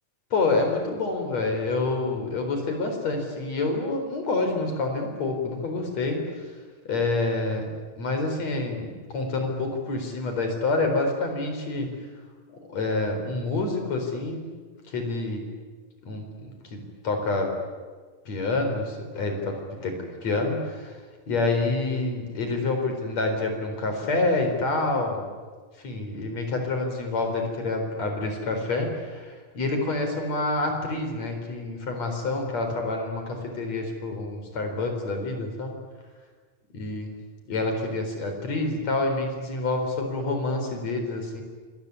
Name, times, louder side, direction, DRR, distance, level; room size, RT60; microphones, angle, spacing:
voice 1, 0.3-6.2 6.9-7.7 8.0-11.9 12.5-14.4 14.9-15.4 16.1-17.5 18.3-19.9 20.2-20.9 21.3-25.2 25.8-35.7 36.7-37.1 37.5-41.4, left 3 dB, 45° left, 4 dB, 5.4 m, -27 dB
27.0 x 21.5 x 9.8 m, 1.5 s
omnidirectional pair, 4.1 m